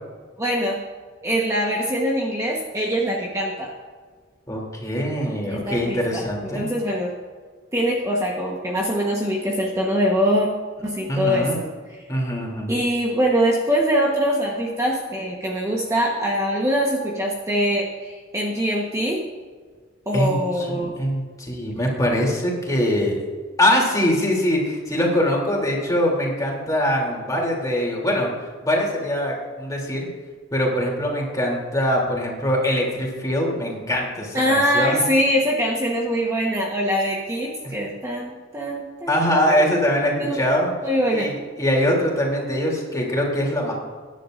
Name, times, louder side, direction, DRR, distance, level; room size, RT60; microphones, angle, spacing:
voice 1, 0.4-0.8 1.2-3.7 5.5-6.2 6.5-7.1 7.7-10.5 10.8-11.7 12.7-19.2 20.1-20.9 34.3-40.4 40.8-41.3, equal, 15° right, -2 dB, 1.2 m, -23 dB
voice 2, 4.5-6.6 11.1-11.6 12.1-12.7 20.1-23.2 23.6-28.3 28.6-30.1 30.5-35.0 39.1-40.7 41.1-43.7, equal, 20° left, -2 dB, 3.0 m, -23 dB
22.0 x 10.5 x 2.6 m, 1.5 s
head